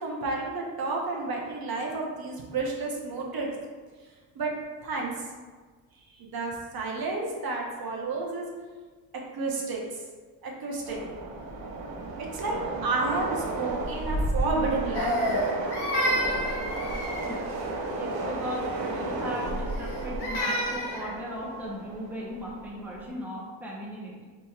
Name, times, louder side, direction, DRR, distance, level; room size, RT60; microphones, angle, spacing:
voice 1, 0.0-3.5 4.4-4.5 4.8-5.1 6.1-8.5 9.3-9.8 10.4-11.0 12.3-12.6 12.8-15.4, right 3 dB, 55° right, -1 dB, 0.7 m, -31 dB
Train, 10.9-23.1, right 2 dB, 90° right, 0.7 m, -33 dB
Crying sobbing, 14.9-17.5 19.7-21.1, equal, 60° left, 0.9 m, -29 dB
voice 2, 18.0-24.2, equal, 5° right, -4 dB, 0.7 m, -37 dB
4.9 x 2.9 x 2.3 m, 1.4 s
cardioid pair, 120°, 44 cm